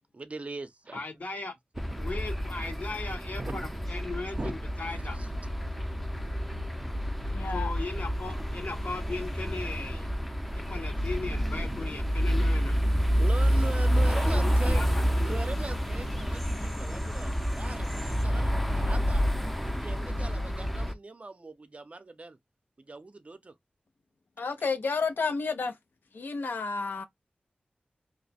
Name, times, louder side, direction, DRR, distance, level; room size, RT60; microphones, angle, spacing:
voice 1, 0.1-1.0 1.8-2.0 3.4-3.9 4.4-4.5 4.9-5.3 13.2-14.8 15.2-19.2 19.6-22.4 22.8-23.5, right 3 dB, 40° right, 0.5 m, -40 dB
voice 2, 0.9-1.5 2.0-5.2 7.5-10.1 10.5-12.8 14.1-15.4, left 3 dB, 55° left, 1.1 m, -38 dB
sound 1, 1.8-20.9, equal, 5° left, 0.6 m, -29 dB
voice 3, 7.3-7.7 24.4-25.7 26.1-27.1, left 4 dB, 85° left, 0.5 m, -31 dB
2.9 x 2.1 x 4.1 m
wide cardioid pair, 80°, 3 cm